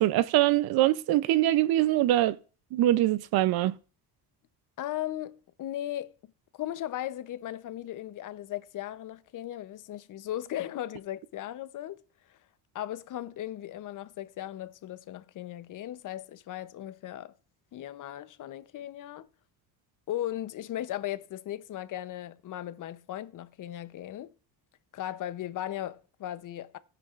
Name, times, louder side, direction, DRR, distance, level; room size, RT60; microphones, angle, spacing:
voice 1, 0.0-2.4 2.7-3.7, right 14 dB, 70° right, 0.6 m, -23 dB
voice 2, 4.8-6.1 6.5-12.0 12.3-12.4 12.7-17.3 17.7-19.3 20.1-24.3 24.9-26.8, left 12 dB, 50° left, 0.7 m, -37 dB
15.5 x 9.9 x 2.5 m
cardioid pair, 125°, 39 cm